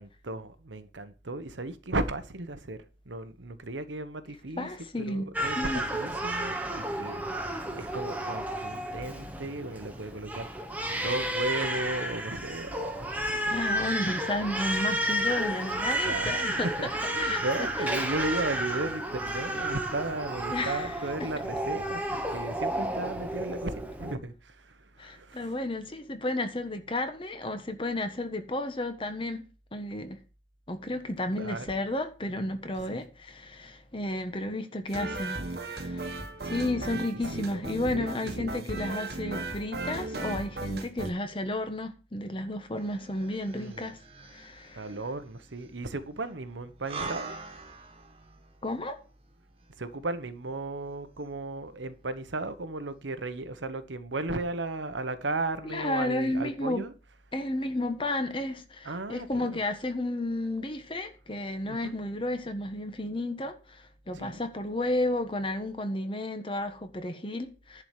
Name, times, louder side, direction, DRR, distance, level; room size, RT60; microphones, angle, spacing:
voice 1, 0.0-2.8 3.1-4.7 5.1-10.5 10.9-13.5 16.0-22.0 22.3-25.5 31.3-31.7 32.9-33.0 36.9-37.6 37.9-38.6 43.5-43.9 44.7-47.4 49.8-56.9 58.8-59.6 61.7-62.0 64.1-64.4, right 2 dB, 85° right, 1.1 m, -35 dB
voice 2, 4.6-5.3 5.5-5.8 13.5-16.7 17.2-17.4 18.0-18.1 20.5-20.9 25.0-29.4 29.7-30.2 30.7-44.8 48.6-49.0 55.6-56.8 57.3-67.8, left 1 dB, 30° left, 1.3 m, -32 dB
Crying sobbing, 5.3-24.1, right 1 dB, 10° right, 1.2 m, -32 dB
sound 1, 34.9-41.1, right 2 dB, 55° right, 1.3 m, -36 dB
sound 2, 42.7-52.2 52.6-52.7, right 4 dB, 30° right, 1.7 m, -46 dB
10.5 x 4.8 x 7.5 m
head